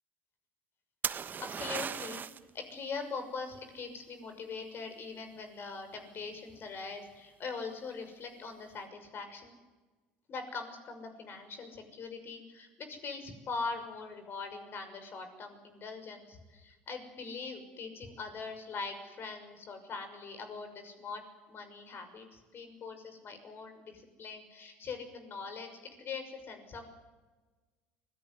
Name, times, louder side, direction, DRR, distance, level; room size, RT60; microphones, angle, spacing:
sound 1, 1.0-2.5 6.2-6.6, right 7 dB, 40° right, 1.2 m, -36 dB
voice 1, 1.4-2.2 2.5-9.6 10.3-21.2 21.5-25.7 26.0-26.9, left 4 dB, 45° left, 7 dB, 6.2 m, -42 dB
24.0 x 17.5 x 9.9 m, 1.3 s
hypercardioid pair, 75°, 5 cm